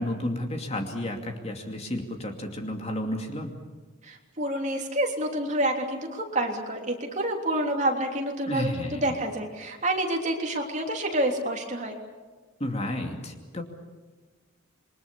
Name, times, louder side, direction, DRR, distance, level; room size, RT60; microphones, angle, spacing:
voice 1, 0.0-3.5 8.5-9.1 12.6-13.6, left 1 dB, 30° left, 3 dB, 2.6 m, -32 dB
voice 2, 4.0-11.9, right 1 dB, 35° right, 2 dB, 3.2 m, -28 dB
28.0 x 22.5 x 7.1 m, 1.3 s
head